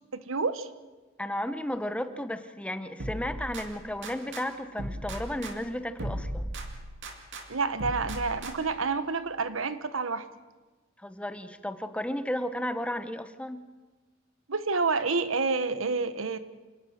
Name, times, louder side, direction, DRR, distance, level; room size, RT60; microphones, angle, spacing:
voice 1, 0.1-0.7 7.5-10.3 14.5-16.4, right 4 dB, 85° right, 12 dB, 1.2 m, -28 dB
voice 2, 1.2-6.5 11.0-13.6, left 1 dB, 5° left, 11 dB, 1.0 m, -33 dB
sound 1, 3.0-4.4 4.8-7.4 7.8-8.8, right 1 dB, 65° right, 2.5 m, -37 dB
27.5 x 18.5 x 6.5 m, 1.3 s
head